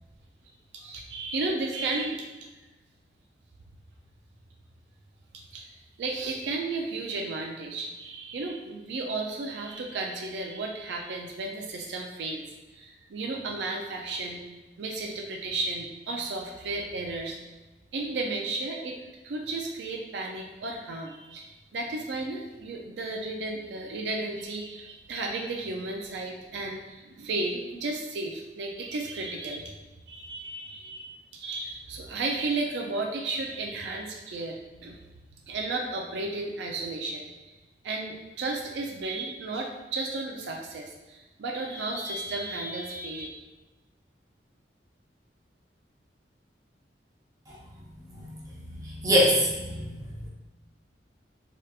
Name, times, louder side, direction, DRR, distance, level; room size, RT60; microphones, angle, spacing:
voice 1, 0.7-2.3 5.5-5.7 6.0-12.4 12.7-14.4 14.8-17.4 17.9-19.0 19.2-29.7 30.1-35.0 35.5-37.3 37.8-43.3, right 2 dB, 75° right, 1 dB, 0.4 m, -33 dB
voice 2, 48.0-50.3, equal, 20° right, -5 dB, 0.7 m, -26 dB
3.2 x 2.9 x 2.3 m, 1.1 s
head